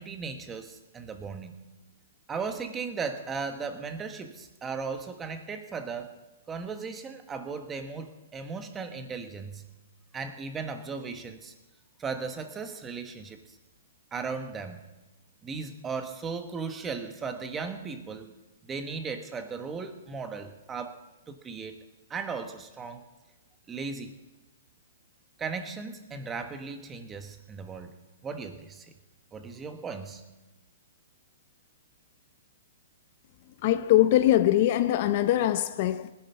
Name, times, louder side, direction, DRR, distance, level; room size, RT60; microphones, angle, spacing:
voice 1, 0.0-1.6 2.3-6.1 6.5-9.6 10.1-11.5 12.0-13.4 14.1-14.8 15.4-18.3 18.7-21.0 21.3-21.8 22.1-23.0 23.7-24.1 25.4-28.0 28.2-28.8 29.3-30.2, right 5 dB, 15° right, 1.3 m, -36 dB
voice 2, 33.6-36.1, left 13 dB, 40° left, 0.6 m, -22 dB
19.0 x 10.5 x 5.7 m
hypercardioid pair, 155°, 0 cm